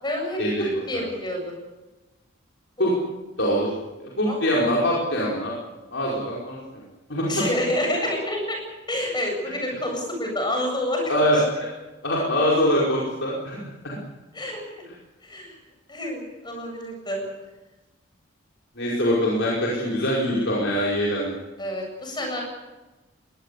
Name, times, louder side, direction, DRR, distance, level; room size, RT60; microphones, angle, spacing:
voice 1, 0.0-1.5 2.8-2.9 4.3-4.4 7.3-8.6 8.9-11.4 14.3-14.6 15.2-15.6 15.9-17.2 21.6-22.4, left 1 dB, 20° left, 1 dB, 7.8 m, -28 dB
voice 2, 3.4-3.7 4.0-5.5 5.9-6.6 7.1-7.2 11.1-11.7 12.0-13.6 13.8-14.0 18.8-21.3, equal, 60° left, -5 dB, 5.1 m, -23 dB
22.0 x 19.0 x 8.4 m, 1.1 s
head